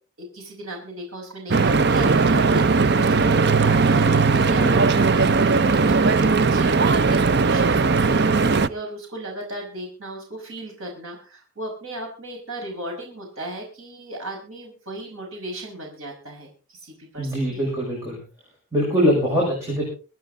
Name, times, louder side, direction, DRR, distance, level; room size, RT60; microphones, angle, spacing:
voice 1, 0.2-17.9, right 1 dB, 80° right, 0 dB, 5.5 m, -36 dB
Stream / Boat Water vehicle, 1.5-8.7, right 4 dB, 50° right, 0.6 m, -18 dB
voice 2, 17.2-18.2 18.7-19.8, equal, 15° right, -3 dB, 6.0 m, -22 dB
25.5 x 9.5 x 3.8 m, 0.35 s
head